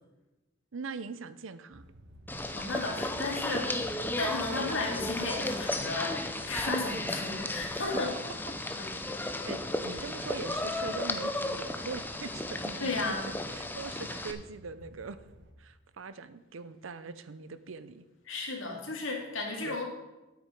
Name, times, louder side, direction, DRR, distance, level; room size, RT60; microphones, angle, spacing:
voice 1, 0.7-1.9 3.5-3.7 8.6-9.2 9.4-13.1 13.5-15.2 15.6-18.0 19.6-19.9, right 4 dB, 80° right, 14 dB, 0.7 m, -42 dB
sound 1, 1.7-15.5, right 1 dB, 60° right, 1.3 m, -54 dB
sound 2, 2.3-14.3, left 2 dB, 10° left, 0.7 m, -34 dB
voice 2, 2.5-3.7 4.2-6.2 6.5-8.1 8.8-9.2 12.8-13.2 18.3-19.9, left 3 dB, 75° left, 0 dB, 2.5 m, -34 dB
9.4 x 8.6 x 5.2 m, 1.0 s
head